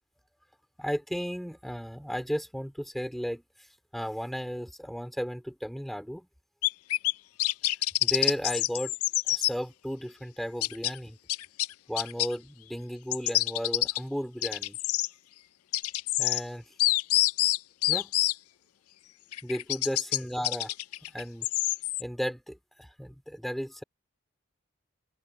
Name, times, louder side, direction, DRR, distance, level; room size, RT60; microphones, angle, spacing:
voice 1, 0.8-3.4 3.9-6.3 8.0-8.9 9.3-11.2 11.9-14.8 16.2-16.6 17.9-18.1 19.4-20.7 21.1-21.5 22.0-23.8, equal, ahead, 3.6 m, -34 dB
sound 1, 6.6-7.1 7.4-9.5 10.6-10.9 11.3-12.3 13.1-14.0 14.4-15.1 15.7-16.4 16.8-18.3 19.3-20.2 20.4-22.0, left 17 dB, 85° left, 0.4 m, -26 dB
head